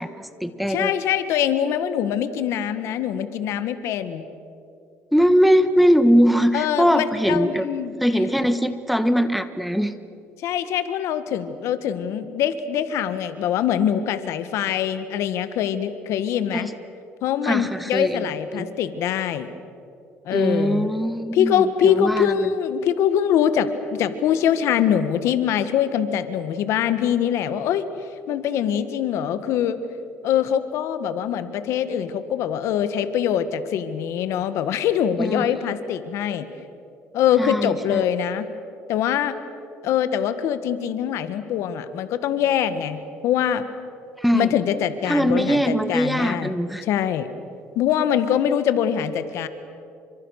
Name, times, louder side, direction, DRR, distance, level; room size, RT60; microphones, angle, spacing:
voice 1, 0.0-1.0 5.1-7.7 8.0-9.9 16.5-16.7 17.4-18.7 20.3-22.5 35.2-35.6 37.4-38.0 44.2-44.5 45.1-46.8, equal, ahead, 9 dB, 1.3 m, -21 dB
voice 2, 0.7-4.3 6.5-7.9 10.4-16.7 17.2-19.5 20.3-20.9 21.3-27.8 28.3-29.8 30.2-36.5 37.1-38.5 38.9-39.3 39.8-43.6 44.3-46.5 46.8-47.3 47.8-49.5, left 9 dB, 70° left, 11 dB, 1.6 m, -23 dB
28.5 x 25.0 x 6.6 m, 2.6 s
cardioid pair, 110°, 5 cm